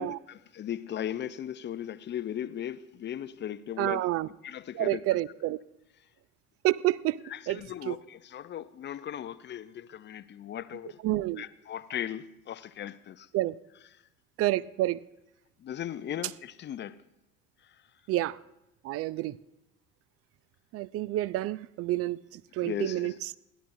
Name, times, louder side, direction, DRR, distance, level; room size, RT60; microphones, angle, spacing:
voice 1, 0.0-4.0 4.4-5.2 7.2-11.0 11.4-13.3 15.6-17.0 22.6-23.2, left 10 dB, 25° left, 0.5 m, -37 dB
voice 2, 3.8-4.3 4.7-5.6 6.6-7.2 7.5-7.6 7.9-8.0 11.0-11.4 13.3-13.6 14.4-15.0 18.1-18.4 18.8-19.3 20.7-23.1, right 16 dB, 35° right, 0.5 m, -29 dB
29.5 x 11.0 x 2.6 m
figure-of-eight pair, 65°, 42 cm